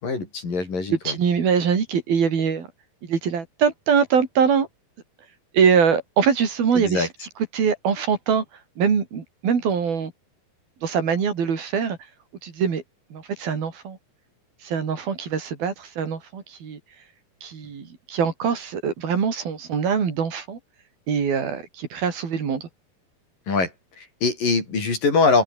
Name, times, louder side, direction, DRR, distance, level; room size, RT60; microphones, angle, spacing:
voice 1, 0.0-1.2 6.8-7.1 23.5-23.7 24.0-25.4, left 4 dB, 65° left, 8.7 m, -22 dB
voice 2, 0.9-2.7 3.0-4.7 5.5-7.1 7.5-8.4 8.8-10.1 10.8-12.0 12.4-12.8 13.1-14.0 14.6-16.8 17.4-20.6 21.1-22.7, right 6 dB, 80° right, 5.9 m, -23 dB
open air
omnidirectional pair, 4.2 m